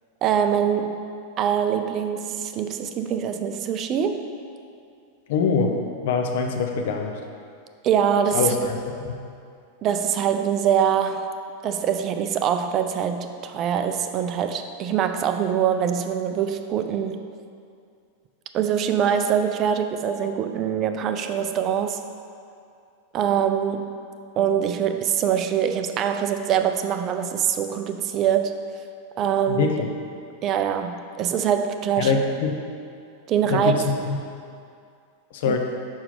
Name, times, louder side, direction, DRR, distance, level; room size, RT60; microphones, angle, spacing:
voice 1, 0.2-1.1 1.4-4.2 7.8-8.6 9.8-11.3 11.6-17.2 18.5-22.0 23.1-24.0 24.4-28.6 29.2-29.7 30.4-32.2 33.3-33.7 35.5-35.6, right 8 dB, 35° right, 8 dB, 0.4 m, -23 dB
voice 2, 5.3-5.7 6.0-7.1 8.3-9.2 29.5-29.9 32.0-32.6 33.5-34.2 35.3-35.6, left 5 dB, 55° left, 3 dB, 0.7 m, -24 dB
5.4 x 4.7 x 5.2 m, 2.4 s
figure-of-eight pair, 90°, 0 cm